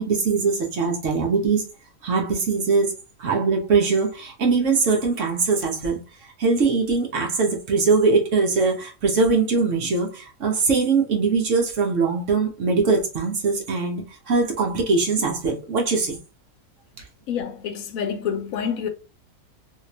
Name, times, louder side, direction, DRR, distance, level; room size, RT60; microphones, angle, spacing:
voice 1, 0.0-1.6 2.0-2.9 3.2-6.0 6.4-16.2, right 4 dB, 60° right, 1.1 m, -21 dB
voice 2, 17.3-18.9, left 7 dB, 70° left, 1.0 m, -27 dB
3.1 x 2.9 x 2.9 m
omnidirectional pair, 1.5 m